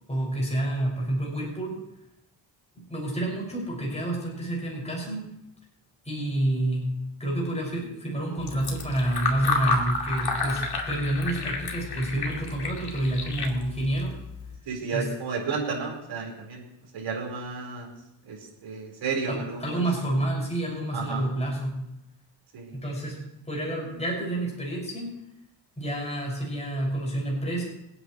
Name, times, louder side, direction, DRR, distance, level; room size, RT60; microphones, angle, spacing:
voice 1, 0.1-1.8 2.9-5.2 6.0-6.9 7.2-14.1 14.9-15.1 19.3-21.7 22.7-23.2 23.5-25.1 25.8-27.6, right 1 dB, 15° left, -3 dB, 6.3 m, -29 dB
Fill (with liquid), 8.4-14.6, left 3 dB, 60° left, 2.5 m, -31 dB
voice 2, 14.7-16.6 16.9-17.9 18.3-18.4 18.6-19.8 20.9-21.2 22.5-22.7, right 5 dB, 85° right, -1 dB, 4.8 m, -32 dB
27.5 x 9.4 x 3.2 m, 0.84 s
cardioid pair, 100°, 44 cm